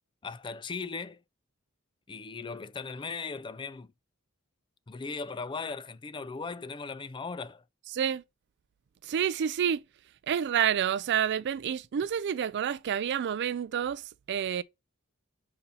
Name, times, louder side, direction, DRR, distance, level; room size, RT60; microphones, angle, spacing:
voice 1, 0.2-1.2 2.1-3.9 4.9-7.6, left 4 dB, 20° left, 0.4 m, -38 dB
voice 2, 9.0-9.8 10.3-14.6, right 8 dB, 55° right, 0.4 m, -29 dB
5.2 x 4.1 x 5.5 m
head